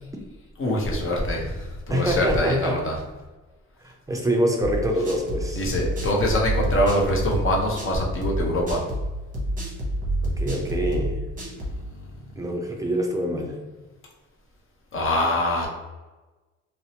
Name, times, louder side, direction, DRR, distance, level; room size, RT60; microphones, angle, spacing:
voice 1, 0.6-2.9 5.6-8.8 14.9-15.7, left 1 dB, 45° left, -1 dB, 0.8 m, -24 dB
voice 2, 1.9-2.8 3.8-5.6 10.4-11.1 12.4-13.6, right 1 dB, 10° right, 1 dB, 0.5 m, -25 dB
sound 1, 4.6-11.8, right 1 dB, 25° right, 1.0 m, -28 dB
2.6 x 2.1 x 2.8 m, 1.2 s
cardioid pair, 90°, 30 cm